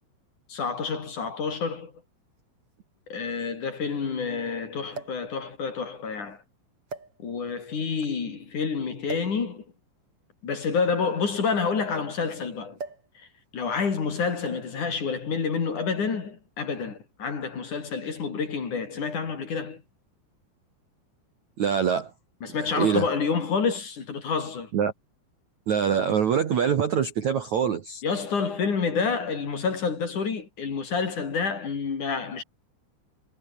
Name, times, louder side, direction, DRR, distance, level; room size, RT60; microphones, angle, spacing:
voice 1, 0.5-1.9 3.1-6.4 7.2-9.6 10.4-12.8 13.5-19.8 22.4-24.7 28.0-32.4, left 5 dB, 45° left, 4.6 m, -28 dB
sound 1, 1.2-1.3 2.4-2.5 2.7-2.8 4.9-5.3 6.1-6.3 6.9-7.6 9.1-9.4 10.5-12.2 12.8-13.1 13.4-13.7 14.4-14.8 15.8-16.0, right 4 dB, 30° right, 5.4 m, -41 dB
voice 2, 21.6-22.1 22.5-23.1 24.7-24.9 25.7-28.0, right 8 dB, 55° right, 2.2 m, -24 dB
omnidirectional pair, 5.6 m